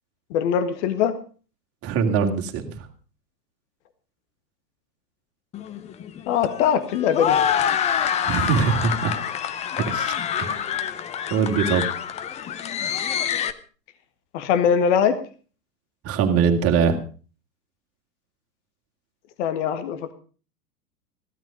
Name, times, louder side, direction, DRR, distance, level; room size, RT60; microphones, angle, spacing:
voice 1, 0.3-1.1 6.3-7.4 14.3-15.2 19.4-20.1, left 8 dB, 45° left, 11 dB, 1.7 m, -21 dB
voice 2, 1.8-2.7 8.2-9.2 9.8-10.6 11.3-11.9 16.0-17.0, right 6 dB, 30° right, 4 dB, 2.6 m, -22 dB
sound 1, 5.5-13.5, left 8 dB, 15° left, 0.6 m, -26 dB
16.0 x 12.5 x 5.2 m, 0.39 s
figure-of-eight pair, 100°, 48 cm